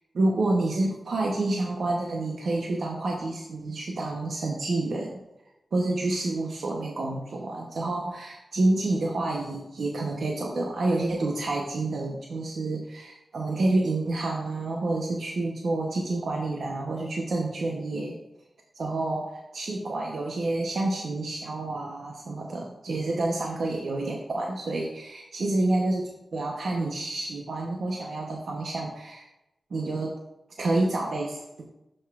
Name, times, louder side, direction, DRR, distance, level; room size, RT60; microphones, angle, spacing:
voice 1, 0.1-5.2 5.7-18.2 18.8-29.2 29.7-30.1 30.6-31.6, right 2 dB, 70° right, 0 dB, 0.9 m, -28 dB
11.5 x 5.4 x 2.4 m, 0.90 s
wide cardioid pair, 80°, 0 cm